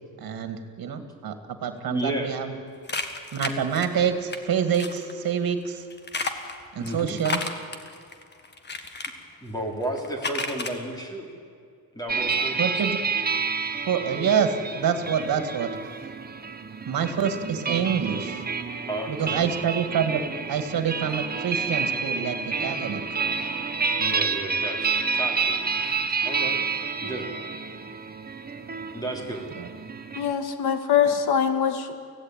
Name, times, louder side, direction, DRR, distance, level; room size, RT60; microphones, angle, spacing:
voice 1, 0.2-1.4 1.6-2.5 3.3-5.8 6.7-7.4 12.6-13.0 13.9-15.7 16.9-18.4 19.1-20.2 20.5-23.0 29.6-29.7, right 7 dB, 65° right, 8 dB, 2.3 m, -26 dB
voice 2, 1.9-2.7 6.8-7.2 9.4-11.3 11.9-12.8 18.9-19.5 24.0-25.6 26.2-26.6 27.0-27.3 28.9-29.4, right 1 dB, 10° left, 1 dB, 3.5 m, -32 dB
sound 1, 2.9-4.4 4.7-5.1 5.9-9.1 9.8-10.7, left 3 dB, 25° left, 1.6 m, -32 dB
sound 2, 12.1-30.3, right 5 dB, 25° right, 1.1 m, -29 dB
voice 3, 30.2-32.0, left 8 dB, 80° left, 8 dB, 2.0 m, -23 dB
24.5 x 16.5 x 9.2 m, 2.3 s
wide cardioid pair, 170°, 38 cm